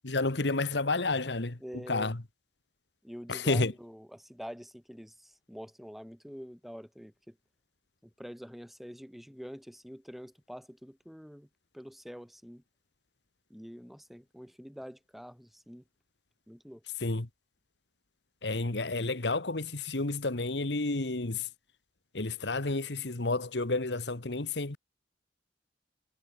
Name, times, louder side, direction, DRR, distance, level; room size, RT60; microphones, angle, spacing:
voice 1, 0.0-1.6 1.9-2.1 3.3-3.7 17.0-17.3 18.4-21.5 22.1-24.8, left 3 dB, 80° left, 1.6 m, -30 dB
voice 2, 1.6-2.1 3.0-7.4 8.0-11.5 11.7-12.6 13.5-15.8 16.5-16.8, equal, ahead, 5.3 m, -46 dB
head